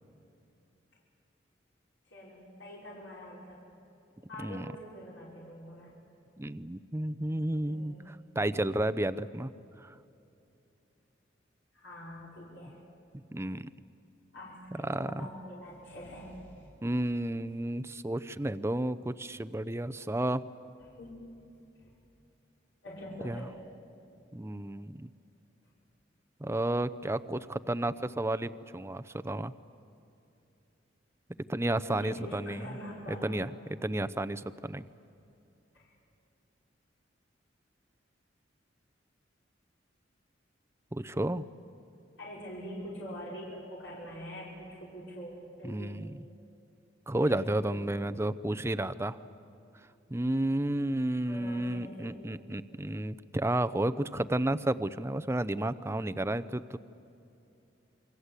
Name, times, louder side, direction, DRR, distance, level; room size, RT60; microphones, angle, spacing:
voice 1, 2.1-3.6 4.3-5.9 7.6-8.1 11.7-12.8 14.3-16.7 21.0-21.3 21.8-21.9 22.8-23.5 31.9-33.4 35.7-35.9 42.2-46.0 47.2-48.0 51.3-52.1, equal, 80° left, -6 dB, 5.6 m, -44 dB
voice 2, 6.4-9.5 9.8-9.9 13.3-13.7 14.7-15.3 16.8-20.4 23.2-23.4 24.3-25.1 26.4-29.5 31.5-32.6 33.2-33.5 33.8-34.8 40.9-41.4 45.6-46.3 47.1-49.2 50.1-56.8, right 1 dB, 15° right, 14 dB, 0.6 m, -32 dB
28.5 x 24.0 x 8.3 m, 2.8 s
head